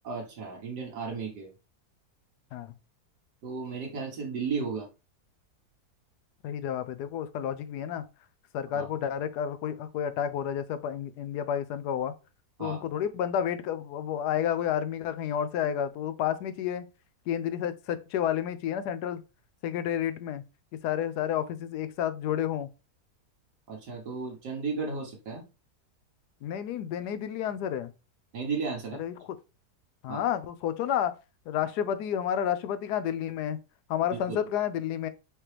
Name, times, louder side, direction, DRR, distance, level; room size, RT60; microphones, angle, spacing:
voice 1, 0.0-1.5 3.4-4.9 8.7-8.9 12.6-12.8 23.7-25.4 28.3-29.0 30.1-30.3 34.1-34.4, right 5 dB, 80° right, 1.7 m, -34 dB
voice 2, 6.4-8.0 8.5-12.1 12.6-16.9 17.3-19.2 19.6-20.4 20.7-22.7 26.4-27.9 29.0-29.4 30.0-31.1 31.5-33.6 33.9-35.1, left 9 dB, 80° left, 1.1 m, -30 dB
4.9 x 3.0 x 3.2 m
omnidirectional pair, 1.7 m